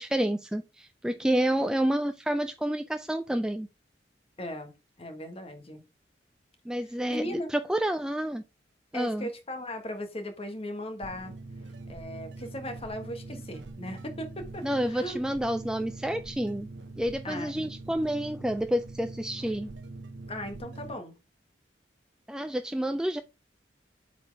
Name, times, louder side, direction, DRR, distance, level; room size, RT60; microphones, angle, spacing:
voice 1, 0.0-3.7 6.7-8.4 8.9-9.3 14.6-16.7 17.0-19.7 22.3-23.2, right 1 dB, 5° right, 0.3 m, -29 dB
voice 2, 4.4-5.8 7.1-7.5 8.9-11.3 11.9-15.2 17.2-17.7 20.3-21.1, left 1 dB, 35° left, 1.4 m, -38 dB
sound 1, 11.0-21.0, right 2 dB, 75° right, 0.7 m, -43 dB
7.9 x 4.3 x 3.4 m
head